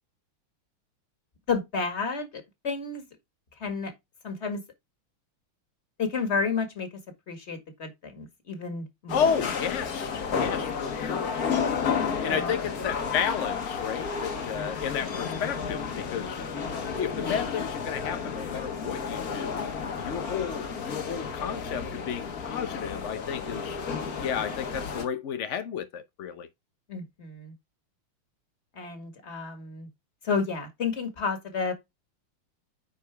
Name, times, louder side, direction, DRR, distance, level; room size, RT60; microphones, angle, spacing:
voice 1, 1.5-3.0 3.6-3.9 4.2-4.6 6.0-6.9 7.3-9.3 12.3-12.5 26.9-27.5 28.8-29.9 30.2-31.7, left 5 dB, 35° left, 1.9 m, -31 dB
voice 2, 9.1-11.4 12.2-16.4 17.0-23.8 24.2-26.5, left 7 dB, 80° left, 0.6 m, -32 dB
sound 1, 9.1-25.0, left 6 dB, 50° left, 1.6 m, -32 dB
9.7 x 4.8 x 3.4 m
omnidirectional pair, 2.3 m